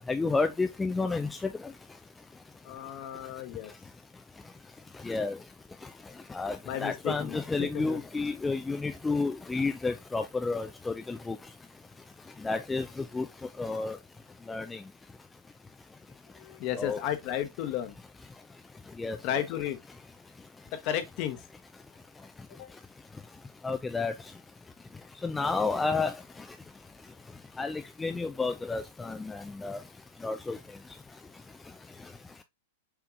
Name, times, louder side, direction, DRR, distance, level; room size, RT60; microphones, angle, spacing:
voice 1, 0.1-1.3 5.0-5.4 6.3-11.4 12.4-12.9 13.1-13.3 13.6-14.0 14.5-14.8 16.8-17.0 19.0-19.4 23.6-24.1 25.2-26.1 27.6-29.8 30.2-30.6, left 3 dB, 10° left, 0.4 m, -30 dB
voice 2, 2.6-3.7 6.6-7.4 7.9-8.0 16.4-17.9 19.2-19.8 20.8-21.4, left 11 dB, 45° left, 1.0 m, -33 dB
5.9 x 3.5 x 2.5 m
figure-of-eight pair, 100°, 0 cm